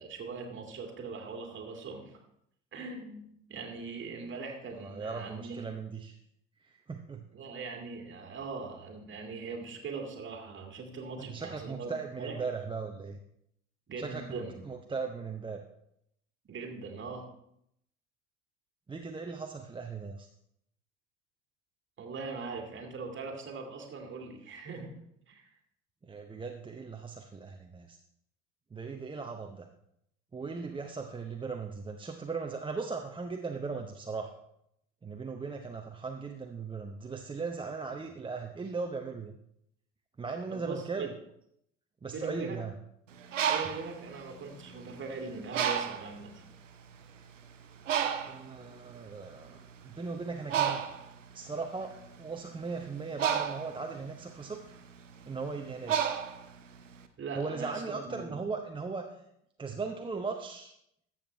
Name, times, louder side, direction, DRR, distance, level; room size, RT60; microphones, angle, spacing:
voice 1, 0.0-2.2 2.7-5.6 7.3-12.4 13.9-14.6 16.5-17.3 22.0-24.9 25.3-25.4 40.5-41.1 42.1-42.7 43.4-46.4 57.2-58.4, right 4 dB, 30° right, 3 dB, 2.1 m, -41 dB
voice 2, 4.8-6.2 6.6-7.2 11.2-13.2 14.0-15.6 18.9-20.3 26.0-28.0 28.7-29.7 30.3-34.3 35.0-39.3 40.2-41.1 42.0-42.7 48.2-50.8 51.3-54.6 55.3-56.1 57.3-59.1 59.6-60.7, right 4 dB, 15° right, 4 dB, 0.7 m, -38 dB
Bird, 43.1-45.0 45.5-46.2 46.9-47.0 47.3-57.0, right 8 dB, 80° right, 0.7 m, -32 dB
13.5 x 7.3 x 3.3 m, 0.75 s
figure-of-eight pair, 65°, 37 cm